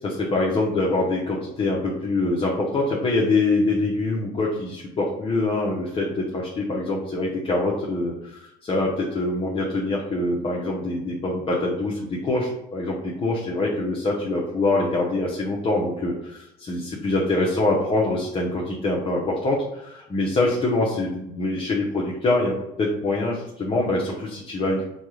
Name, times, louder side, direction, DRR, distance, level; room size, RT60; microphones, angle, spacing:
voice 1, 0.0-24.8, left 2 dB, 35° left, -4 dB, 0.8 m, -24 dB
5.3 x 2.3 x 3.1 m, 0.86 s
cardioid pair, 110°, 17 cm